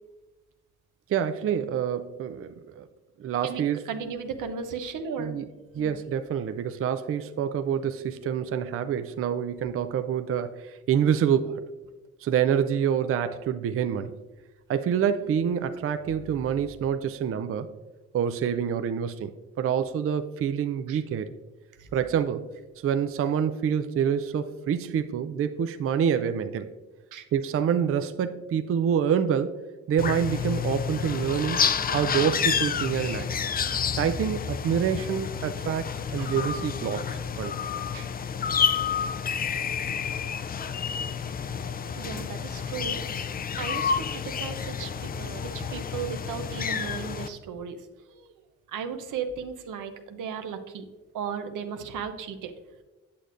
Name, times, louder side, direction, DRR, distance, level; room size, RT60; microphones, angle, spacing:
voice 1, 1.1-2.5 2.8-2.9 3.2-3.9 5.2-5.4 5.8-11.6 12.2-14.1 14.7-17.7 18.1-19.3 19.6-21.3 21.9-22.5 22.8-26.7 27.3-29.6 29.9-31.6 31.9-33.3 33.9-37.5, right 8 dB, 45° right, 9 dB, 0.4 m, -27 dB
voice 2, 3.4-5.3 5.7-6.0 16.1-16.6 20.9-21.0 21.8-21.9 27.1-27.2 33.0-33.2 36.2-36.3 37.9-38.1 42.0-43.0 43.6-48.3 48.7-50.9 51.1-52.5, right 6 dB, 85° right, 8 dB, 0.7 m, -36 dB
sound 1, 30.0-47.3, left 7 dB, 30° left, 0.4 m, -29 dB
8.4 x 6.6 x 2.5 m, 1.2 s
cardioid pair, 80°, 31 cm